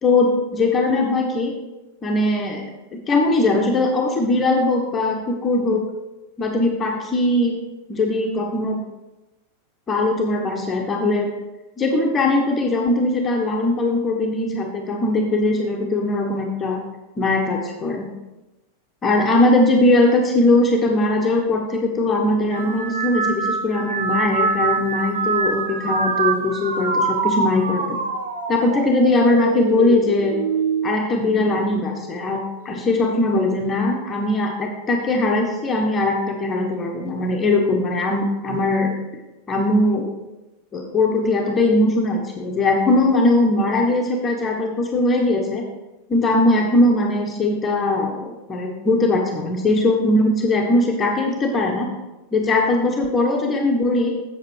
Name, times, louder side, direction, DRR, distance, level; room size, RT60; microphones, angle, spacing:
voice 1, 0.0-1.5 2.0-2.6 2.9-5.8 6.4-7.6 7.9-8.8 9.9-11.3 11.8-16.8 17.2-18.1 19.0-27.8 28.5-30.3 30.8-39.0 39.5-40.2 40.7-45.6 46.1-51.9 52.3-54.1, left 2 dB, 20° left, 1 dB, 1.4 m, -20 dB
sound 1, 22.5-32.1 32.6-33.1 34.1-34.5, right 4 dB, 65° right, 1.1 m, -25 dB
8.0 x 7.8 x 4.8 m, 1.0 s
figure-of-eight pair, 90°, 0 cm